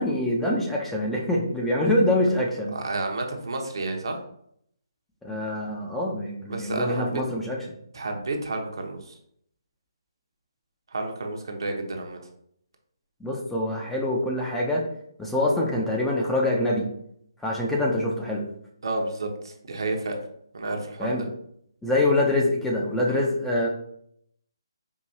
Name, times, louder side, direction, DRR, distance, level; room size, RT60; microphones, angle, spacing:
voice 1, 0.0-2.7 5.2-7.6 13.2-14.8 15.2-16.9 17.4-18.4 21.0-21.3 21.8-23.7, left 1 dB, 5° left, -3 dB, 0.5 m, -25 dB
voice 2, 2.7-4.2 6.5-7.2 7.9-9.2 10.9-12.2 18.8-20.2 20.5-21.3 23.1-23.3, right 2 dB, 65° right, 3 dB, 0.9 m, -31 dB
4.7 x 2.6 x 2.7 m, 0.70 s
figure-of-eight pair, 145°, 3 cm